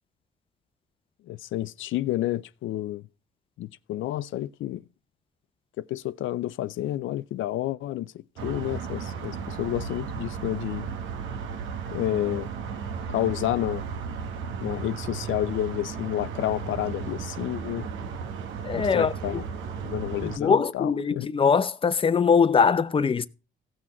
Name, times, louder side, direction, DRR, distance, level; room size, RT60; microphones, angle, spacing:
voice 1, 1.3-3.0 3.6-4.8 5.8-8.1 8.4-10.9 11.9-12.5 13.1-13.9 14.6-17.9 18.7-19.4 19.8-21.3, left 14 dB, 75° left, 0.4 m, -30 dB
sound 1, 8.4-20.4, right 6 dB, 85° right, 1.2 m, -35 dB
voice 2, 18.6-19.1 20.2-23.3, left 6 dB, 25° left, 0.6 m, -22 dB
16.0 x 6.3 x 4.3 m
cardioid pair, 90°, 20 cm